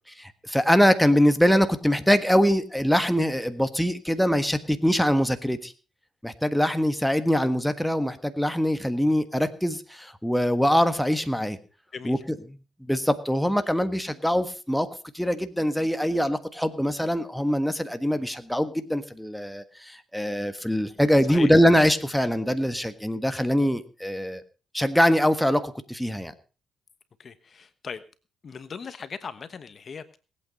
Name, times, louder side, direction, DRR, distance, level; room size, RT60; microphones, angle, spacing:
voice 1, 0.2-5.7 6.2-11.6 12.0-12.4 12.9-14.9 15.1-24.4 24.7-26.3, equal, ahead, 9 dB, 1.5 m, -23 dB
voice 2, 11.9-12.2 18.1-18.2 21.3-21.5 27.2-28.0 28.4-30.2, left 5 dB, 50° left, 12 dB, 1.2 m, -38 dB
19.5 x 8.7 x 5.3 m, 0.36 s
cardioid pair, 80°, 0 cm